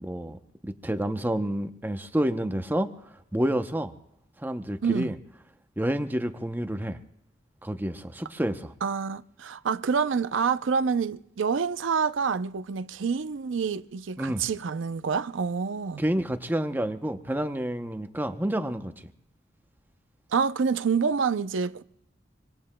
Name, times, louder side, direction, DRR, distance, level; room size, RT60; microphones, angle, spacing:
voice 1, 0.0-3.9 4.4-5.2 5.8-7.0 7.6-8.7 14.2-14.4 16.0-19.1, right 1 dB, 10° right, 0.7 m, -29 dB
voice 2, 4.8-5.1 8.8-16.0 20.3-21.8, right 5 dB, 75° right, 0.5 m, -27 dB
25.5 x 24.5 x 2.2 m
head